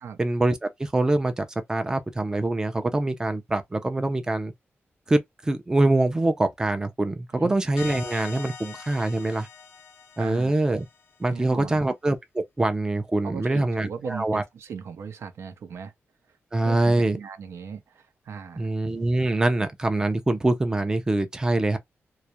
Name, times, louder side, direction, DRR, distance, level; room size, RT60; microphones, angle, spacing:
voice 1, 0.2-4.5 5.1-9.5 10.2-10.9 11.2-14.4 16.5-17.2 18.6-21.8, right 2 dB, 15° right, 0.4 m, -24 dB
sound 1, 7.8-11.2, left 6 dB, 85° left, 0.6 m, -42 dB
voice 2, 10.2-10.5 11.3-11.8 13.2-15.9 16.3-16.4 16.6-18.7, right 6 dB, 80° right, 0.5 m, -37 dB
2.3 x 2.0 x 2.7 m
wide cardioid pair, 140°, 5 cm